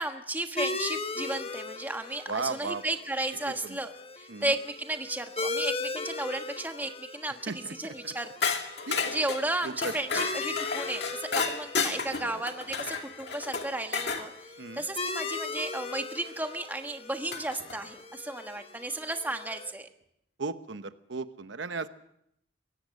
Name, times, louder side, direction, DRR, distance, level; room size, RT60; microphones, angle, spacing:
voice 1, 0.0-8.5 8.8-19.9, right 2 dB, 10° right, 6 dB, 1.3 m, -34 dB
sound 1, 0.6-19.7, left 3 dB, 30° left, 1.1 m, -39 dB
voice 2, 2.3-2.8 3.7-3.8 4.3-4.5 7.5-8.1 8.9-9.2 9.6-10.2 12.2-12.4 14.6-14.8 20.4-21.9, right 4 dB, 75° right, 11 dB, 0.9 m, -36 dB
sound 2, 8.4-14.3 16.3-16.4 17.3-17.8, left 5 dB, 60° left, 2.2 m, -32 dB
23.5 x 17.5 x 6.5 m, 0.75 s
head